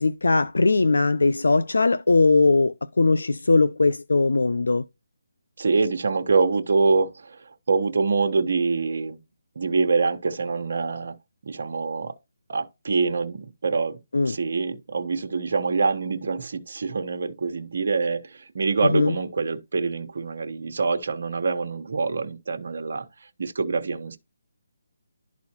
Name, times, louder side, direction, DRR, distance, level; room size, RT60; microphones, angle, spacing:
voice 1, 0.0-4.8 14.1-14.4 18.9-19.1, left 3 dB, 85° left, 0.5 m, -20 dB
voice 2, 5.6-9.2 9.6-11.1 11.4-12.1 12.5-14.0 14.2-23.1 23.4-24.2, right 4 dB, 60° right, 1.0 m, -25 dB
11.5 x 4.1 x 2.9 m
hypercardioid pair, 165°, 0 cm